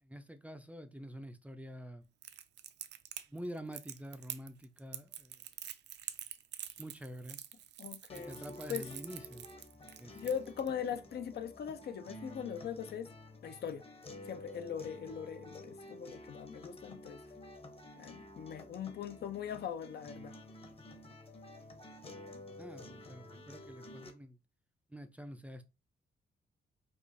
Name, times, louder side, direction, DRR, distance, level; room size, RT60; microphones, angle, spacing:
voice 1, 0.0-2.1 3.3-5.4 6.8-7.4 8.2-9.5 10.0-10.3 22.5-24.4 24.9-25.7, equal, 10° right, 0.4 m, -47 dB
Crackle, 2.2-10.7, right 10 dB, 75° right, 0.5 m, -46 dB
voice 2, 7.8-8.4 8.7-8.9 10.1-13.1 13.4-13.8 14.3-17.2 17.9-20.4, left 8 dB, 65° left, 0.6 m, -40 dB
sound 1, 8.1-24.1, left 1 dB, 30° left, 1.0 m, -51 dB
5.0 x 2.4 x 4.1 m
cardioid pair, 120°, 18 cm